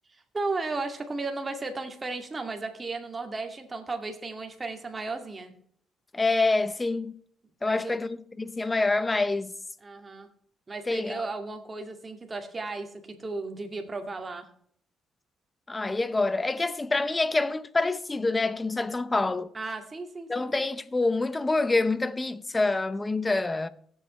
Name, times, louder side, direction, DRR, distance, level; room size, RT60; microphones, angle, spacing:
voice 1, 0.1-5.5 7.6-8.0 9.8-10.3 10.7-14.5 19.5-20.5, right 3 dB, 25° right, 2.2 m, -35 dB
voice 2, 6.1-7.2 7.6-9.5 10.9-11.3 15.7-19.5 20.3-23.7, left 3 dB, 20° left, 0.8 m, -26 dB
17.5 x 8.1 x 3.2 m
cardioid pair, 90°, 0 cm